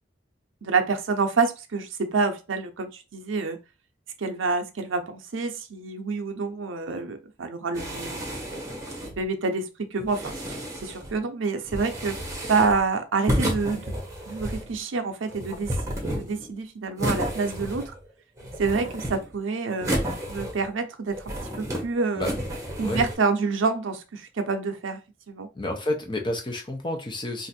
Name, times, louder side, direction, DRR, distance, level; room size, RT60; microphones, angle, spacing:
voice 1, 0.6-3.6 4.2-8.3 9.2-12.2 12.5-14.0 14.3-15.8 16.0-17.9 18.6-19.9 20.3-22.3 22.8-25.0 25.3-25.5, right 4 dB, 85° right, 0.6 m, -27 dB
sound 1, 7.7-9.2 10.0-11.1 11.7-12.8 13.3-14.7 15.3-16.5 17.0-18.1 18.4-19.3 19.8-20.8 21.1-21.8 22.2-23.1, equal, 15° right, 0.8 m, -31 dB
voice 2, 25.5-27.5, left 1 dB, 25° left, 0.6 m, -30 dB
2.5 x 2.5 x 4.1 m
head